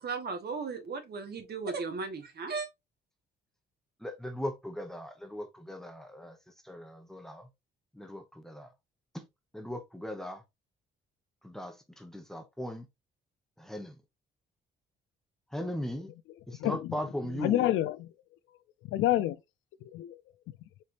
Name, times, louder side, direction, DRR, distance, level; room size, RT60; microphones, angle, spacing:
voice 1, 0.0-2.7, right 4 dB, 55° right, 1.3 m, -36 dB
voice 2, 4.0-6.4 6.6-7.5 7.9-8.7 9.1-9.3 9.5-10.4 11.4-12.9 13.6-13.9 15.5-16.1 16.5-17.7, left 1 dB, ahead, 1.0 m, -38 dB
voice 3, 16.6-16.9 17.2-18.1 18.9-19.4 19.8-20.2, left 14 dB, 85° left, 0.4 m, -28 dB
4.3 x 3.3 x 2.5 m
cardioid pair, 90°, 20 cm